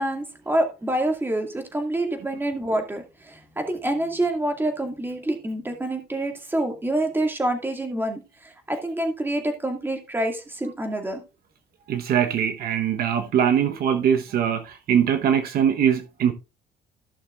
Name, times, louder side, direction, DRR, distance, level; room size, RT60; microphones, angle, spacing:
voice 1, 0.0-11.2, right 1 dB, 10° right, 2.1 m, -27 dB
voice 2, 11.9-16.3, right 8 dB, 65° right, 1.1 m, -22 dB
15.0 x 6.4 x 2.4 m
cardioid pair, 110°, 17 cm